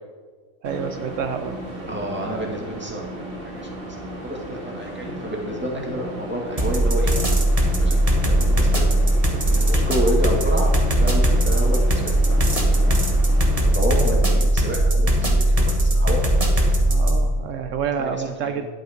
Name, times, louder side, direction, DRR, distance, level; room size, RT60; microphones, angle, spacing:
sound 1, 0.6-13.7, right 1 dB, 45° right, 2.0 m, -35 dB
voice 1, 0.6-1.6 16.9-18.7, right 7 dB, 75° right, 8 dB, 1.0 m, -28 dB
voice 2, 1.9-3.2 3.5-3.8 4.2-7.1 7.8-8.8 9.5-10.7 11.0-13.1 13.7-16.3 18.0-18.7, equal, 10° right, -1 dB, 1.9 m, -29 dB
sound 2, 6.6-17.2, right 1 dB, 30° right, 1.5 m, -19 dB
12.0 x 8.6 x 5.1 m, 1.5 s
omnidirectional pair, 1.3 m